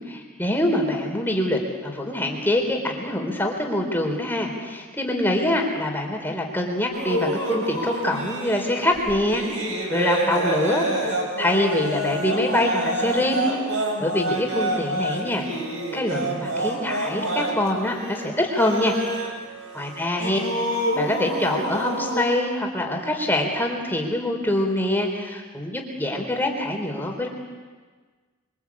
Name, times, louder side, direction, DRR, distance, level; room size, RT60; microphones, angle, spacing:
voice 1, 0.1-15.5 15.9-19.4 19.7-20.4 21.0-27.3, left 1 dB, 10° left, 1 dB, 3.8 m, -25 dB
sound 1, 6.9-22.3, right 1 dB, 65° right, 6.3 m, -28 dB
29.0 x 23.5 x 8.5 m, 1.4 s
head